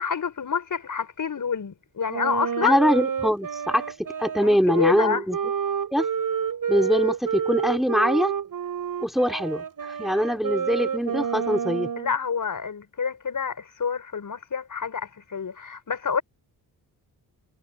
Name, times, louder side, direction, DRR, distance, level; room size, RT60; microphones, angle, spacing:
voice 1, 0.0-2.8 4.4-5.2 12.0-16.2, left 6 dB, 50° left, 6.3 m, -28 dB
Wind instrument woodwind instrument, 2.1-12.1, right 7 dB, 55° right, 6.6 m, -29 dB
voice 2, 2.6-3.9 4.2-5.4 5.9-6.1 6.7-8.3 9.0-11.9, equal, ahead, 3.0 m, -23 dB
cardioid pair, 65°, 40 cm